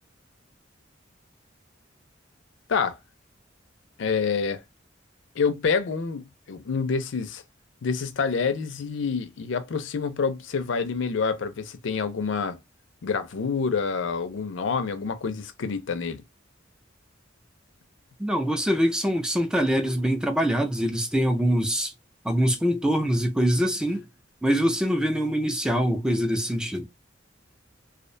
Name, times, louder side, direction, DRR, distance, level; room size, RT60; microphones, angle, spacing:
voice 1, 4.0-4.6 5.4-7.4 7.8-12.6 13.0-16.2, left 5 dB, 70° left, 0.4 m, -27 dB
voice 2, 18.2-21.9 22.2-24.0 24.4-26.9, equal, 5° right, 0.3 m, -24 dB
2.4 x 2.1 x 2.4 m
head